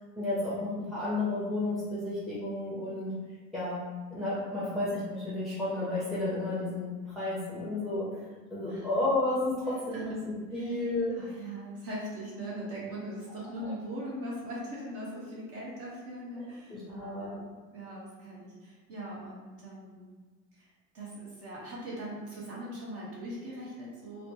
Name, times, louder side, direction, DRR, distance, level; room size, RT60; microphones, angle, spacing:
voice 1, 0.2-3.1 3.5-8.2 8.5-11.2 13.6-13.7 16.4-17.4, left 2 dB, ahead, -10 dB, 0.7 m, -32 dB
voice 2, 11.1-17.4 17.7-20.2 20.5-24.3, right 1 dB, 40° right, -6 dB, 1.0 m, -41 dB
3.0 x 2.2 x 2.8 m, 1.4 s
cardioid pair, 135°, 35 cm